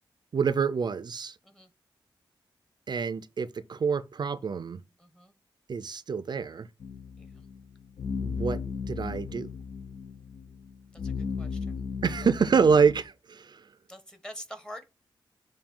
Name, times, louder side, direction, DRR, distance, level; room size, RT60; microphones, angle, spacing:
voice 1, 0.3-1.4 2.9-4.8 5.7-6.7 8.2-9.5 12.0-13.7, right 6 dB, 55° right, 0.5 m, -26 dB
voice 2, 5.0-5.3 7.2-7.3 10.9-11.7 13.9-14.9, equal, 10° left, 1.2 m, -45 dB
sound 1, 6.8-13.0, left 5 dB, 75° left, 0.8 m, -36 dB
7.1 x 2.7 x 5.4 m
wide cardioid pair, 95°, 9 cm